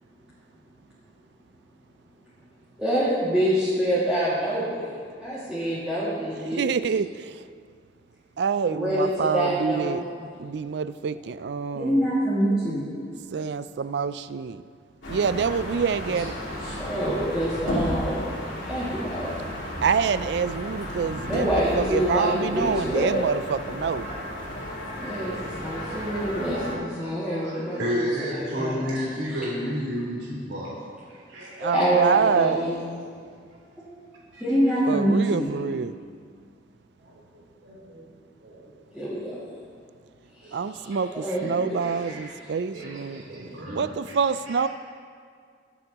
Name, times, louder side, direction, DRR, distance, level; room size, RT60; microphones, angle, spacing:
voice 1, 2.8-4.9 5.2-6.7 8.7-10.3 11.7-12.9 16.6-18.2 18.7-19.3 21.2-23.3 25.0-29.0 31.6-32.8 33.8-34.1 34.4-35.5 38.9-39.4 40.3-41.8 42.2-42.3, right 1 dB, 5° right, -12 dB, 2.2 m, -26 dB
voice 2, 6.5-7.4 8.4-10.0 10.4-12.0 13.3-14.6 15.1-16.3 19.8-24.1 31.6-32.6 34.9-35.9 40.5-43.2 43.7-44.7, right 6 dB, 60° right, 14 dB, 0.4 m, -26 dB
sound 1, 15.0-26.7, left 1 dB, 85° left, 2.8 m, -33 dB
voice 3, 27.3-30.7 31.1-31.8 32.5-33.3 34.3-34.4 37.0-38.0 38.4-38.6 41.0-41.3 41.8-42.3 42.7-43.9 44.5-44.7, equal, 80° right, -7 dB, 3.5 m, -33 dB
23.0 x 7.9 x 3.0 m, 2.1 s
head